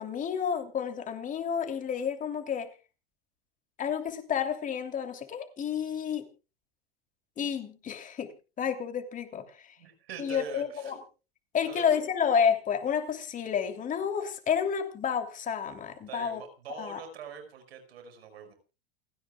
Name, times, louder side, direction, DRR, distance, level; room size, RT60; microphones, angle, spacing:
voice 1, 0.0-2.7 3.8-6.3 7.4-8.3 8.6-9.7 10.2-11.0 11.5-16.4 16.8-17.0, left 7 dB, 25° left, 6 dB, 3.1 m, -30 dB
voice 2, 9.8-10.9 11.6-12.0 16.1-18.5, right 6 dB, 85° right, 7 dB, 5.5 m, -43 dB
29.0 x 10.0 x 2.4 m, 0.31 s
supercardioid pair, 125°, 30 cm